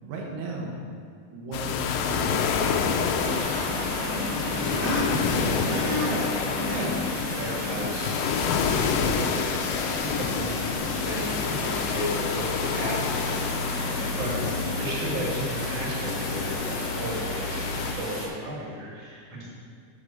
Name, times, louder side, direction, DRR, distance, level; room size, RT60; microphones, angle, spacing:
voice 1, 0.0-0.8 1.3-2.9 12.7-13.0 14.1-14.4 19.3-19.5, right 2 dB, 85° right, -2 dB, 3.1 m, -36 dB
sound 1, 1.5-17.9, left 5 dB, 85° left, 1.9 m, -28 dB
sound 2, 3.2-18.3, left 2 dB, 55° left, 1.2 m, -34 dB
voice 2, 4.8-5.2 5.7-6.2 6.5-8.1 10.0-14.3 14.8-19.5, equal, 45° right, -5 dB, 2.9 m, -33 dB
6.1 x 6.1 x 6.6 m, 2.4 s
omnidirectional pair, 4.5 m